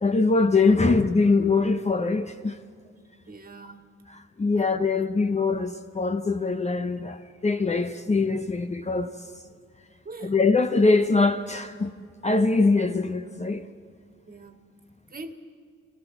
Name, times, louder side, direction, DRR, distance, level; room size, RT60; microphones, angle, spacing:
voice 1, 0.0-2.6 4.1-9.1 10.2-11.9 12.2-13.7, left 3 dB, 20° left, 0.8 m, -23 dB
voice 2, 3.3-3.9 4.5-4.6 5.2-5.3 7.4-7.6 10.1-10.4 14.3-14.6 15.1-15.3, right 2 dB, 30° right, 1.9 m, -42 dB
26.0 x 17.5 x 5.9 m
cardioid pair, 90°, 30 cm